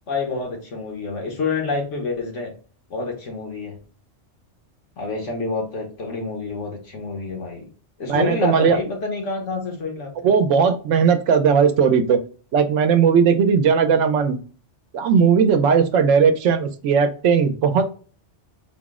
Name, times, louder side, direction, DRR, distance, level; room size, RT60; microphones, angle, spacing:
voice 1, 0.1-2.6 2.9-3.8 5.0-7.7 8.0-10.3, left 3 dB, 85° left, 1.4 m, -28 dB
voice 2, 8.0-8.8 10.2-12.2 12.5-14.4 14.9-17.8, right 6 dB, 85° right, 0.9 m, -17 dB
4.1 x 2.0 x 3.5 m
omnidirectional pair, 1.2 m